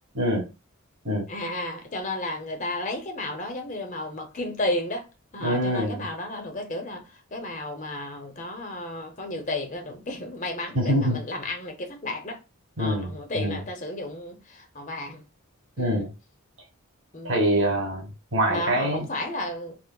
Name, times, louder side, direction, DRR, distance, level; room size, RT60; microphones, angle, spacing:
voice 1, 0.1-0.5 1.0-1.3 5.4-6.0 10.7-11.2 12.8-13.6 15.8-16.1 17.2-19.0, equal, 60° right, 1.4 m, -25 dB
voice 2, 1.3-5.1 5.3-12.4 12.8-15.2 15.8-16.1 17.1-17.4 18.5-19.8, left 1 dB, 35° left, 0.6 m, -33 dB
4.6 x 2.0 x 2.2 m
head